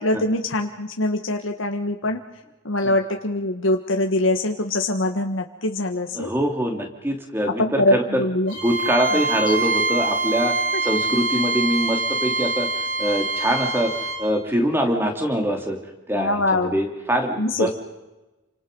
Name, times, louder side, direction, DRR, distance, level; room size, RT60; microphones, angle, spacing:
voice 1, 0.0-2.2 2.6-6.3 7.6-8.5 9.1-9.2 9.5-9.6 10.7-10.8 16.1-16.8 17.4-17.7, left 1 dB, 85° left, 3 dB, 1.5 m, -23 dB
voice 2, 6.1-8.2 8.6-13.9 14.2-15.8 16.1-17.7, equal, 10° right, 3 dB, 3.1 m, -24 dB
Bowed string instrument, 8.5-14.2, right 3 dB, 75° right, 7.4 m, -24 dB
29.5 x 25.5 x 5.5 m, 1.1 s
head